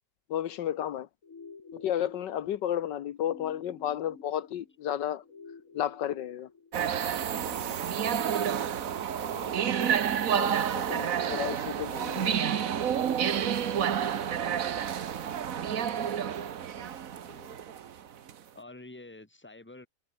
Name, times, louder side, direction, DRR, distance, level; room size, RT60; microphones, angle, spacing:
voice 1, 0.3-1.1 1.7-5.2 5.7-6.5 9.8-9.9 10.3-12.5 17.3-17.6, left 10 dB, 80° left, 1.6 m, -33 dB
sound 1, 1.2-17.2, left 5 dB, 45° left, 2.4 m, -52 dB
sound 2, 6.7-18.3, right 9 dB, 55° right, 1.4 m, -29 dB
voice 2, 9.1-9.5 15.5-15.9 18.5-19.9, left 2 dB, 5° left, 2.0 m, -49 dB
omnidirectional pair, 1.9 m